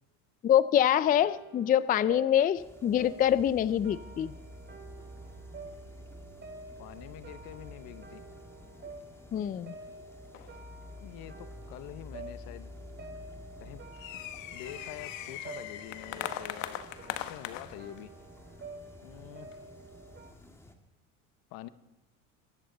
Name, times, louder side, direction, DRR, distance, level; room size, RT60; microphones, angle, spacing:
voice 1, 0.4-4.3 9.3-9.7, left 10 dB, 25° left, 17 dB, 0.4 m, -25 dB
sound 1, 1.0-20.3, right 3 dB, 30° right, 2.4 m, -49 dB
sound 2, 2.5-20.7, left 1 dB, 5° left, 2.0 m, -50 dB
sound 3, 3.2-3.6 3.9-4.0 4.6-4.7 5.5-6.0 6.6-7.0 7.7-8.5 9.1-9.2 9.5-9.6 10.3-10.9 11.5-11.6 12.2-12.3 12.5-12.9 13.4-18.1 18.7-18.8 19.4-19.8, left 12 dB, 85° left, 1.1 m, -41 dB
voice 2, 6.8-8.2 11.0-12.7 13.6-13.8 14.5-18.2 19.0-19.5 21.5-21.7, left 13 dB, 65° left, 13 dB, 1.1 m, -46 dB
23.0 x 11.5 x 3.9 m, 0.96 s
supercardioid pair, 95°, 38 cm